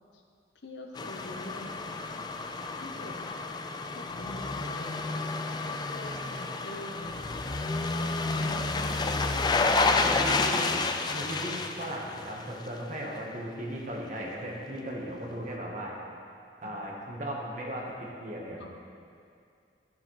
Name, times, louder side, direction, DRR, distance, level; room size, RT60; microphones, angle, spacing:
voice 1, 0.6-2.1 2.7-3.3 3.9-5.3 5.6-7.7 8.3-10.1 16.6-16.8 18.6-18.7, left 1 dB, 90° left, 3 dB, 0.9 m, -45 dB
sound 1, 1.0-12.8 13.2-13.3, left 3 dB, 25° left, 0.4 m, -30 dB
voice 2, 9.4-16.0 16.6-18.7, equal, 45° right, -2 dB, 1.4 m, -37 dB
12.5 x 7.3 x 3.3 m, 2.4 s
head